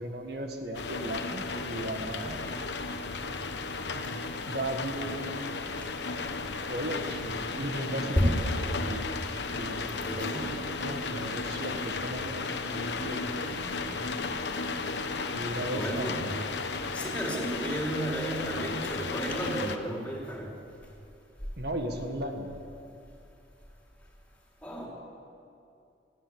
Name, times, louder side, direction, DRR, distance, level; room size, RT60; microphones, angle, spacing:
voice 1, 0.0-2.6 3.9-4.2 4.5-5.5 6.6-14.4 15.3-16.2 21.6-22.5, right 1 dB, 65° right, 4 dB, 1.9 m, -37 dB
sound 1, 0.7-19.8, left 4 dB, 80° left, 1.2 m, -34 dB
voice 2, 10.0-10.6 15.7-16.3 16.9-20.5 24.6-24.9, equal, 10° left, -3 dB, 4.6 m, -32 dB
20.5 x 15.0 x 9.7 m, 2.5 s
head